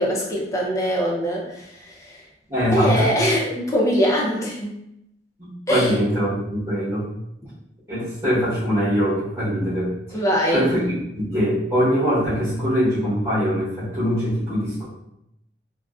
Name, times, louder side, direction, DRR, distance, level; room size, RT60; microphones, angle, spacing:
voice 1, 0.0-2.2 2.7-4.7 5.7-5.9 10.1-10.6, equal, 20° left, -3 dB, 0.5 m, -22 dB
voice 2, 2.5-3.1 5.4-7.1 7.9-10.2 10.5-14.9, equal, 10° right, -12 dB, 1.1 m, -22 dB
2.4 x 2.1 x 2.4 m, 0.82 s
head